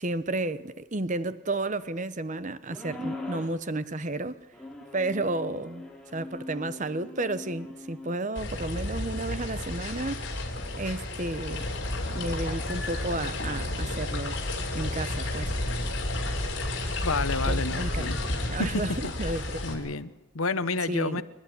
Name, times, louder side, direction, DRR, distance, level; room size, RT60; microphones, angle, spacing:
voice 1, 0.0-4.5 4.9-10.5 10.8-11.7 12.1-14.4 14.7-15.5 17.5-18.1 18.5-18.9 19.2-19.6 20.9-21.2, right 2 dB, 35° right, 0.8 m, -32 dB
sound 1, 2.7-3.6 4.5-8.2, left 2 dB, 5° left, 3.1 m, -41 dB
sound 2, 8.4-19.7, left 1 dB, 55° left, 5.4 m, -31 dB
voice 2, 17.0-18.2 19.2-19.4 19.6-21.2, left 4 dB, 80° left, 1.0 m, -30 dB
28.5 x 12.0 x 9.8 m
head